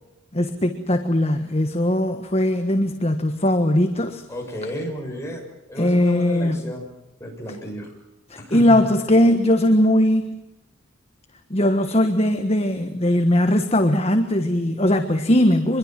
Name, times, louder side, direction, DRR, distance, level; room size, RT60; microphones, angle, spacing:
voice 1, 0.3-4.2 5.8-6.6 8.3-10.4 11.5-15.8, left 1 dB, 30° left, 7 dB, 1.4 m, -19 dB
voice 2, 4.3-5.4 5.7-6.8 7.2-7.9 8.4-8.9, equal, 15° left, 0 dB, 6.9 m, -31 dB
25.5 x 22.5 x 7.6 m, 0.91 s
head